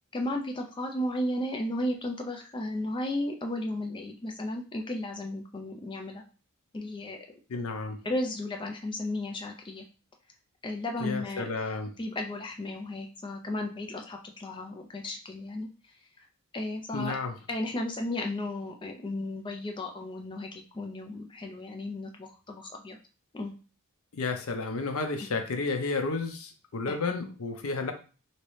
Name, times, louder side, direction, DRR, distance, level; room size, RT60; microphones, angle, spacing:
voice 1, 0.1-6.2 6.7-7.2 8.0-9.8 10.6-11.5 12.0-15.7 16.5-17.2 17.5-23.0 23.3-23.5 26.9-27.0, left 1 dB, 20° left, 3 dB, 0.4 m, -34 dB
voice 2, 7.5-8.0 11.0-11.9 16.9-17.3 24.1-27.9, left 3 dB, 70° left, 5 dB, 0.6 m, -32 dB
3.0 x 2.8 x 3.1 m, 0.36 s
head